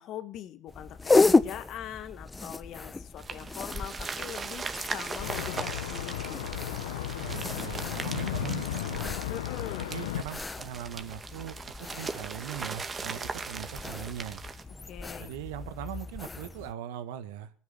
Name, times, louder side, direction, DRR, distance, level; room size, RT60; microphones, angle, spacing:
voice 1, 0.0-6.3 9.3-9.9 14.9-15.3, left 11 dB, 55° left, 11 dB, 1.9 m, -42 dB
sound 1, 0.7-16.7, left 3 dB, 20° left, 1.2 m, -33 dB
sound 2, 3.2-14.6, right 4 dB, 30° right, 2.3 m, -39 dB
sound 3, 5.2-10.2, left 12 dB, 85° left, 1.1 m, -34 dB
voice 2, 7.2-9.2 9.8-14.4 15.2-17.5, right 11 dB, 75° right, 11 dB, 1.8 m, -40 dB
18.5 x 9.7 x 7.9 m, 0.43 s
hypercardioid pair, 70°, 0 cm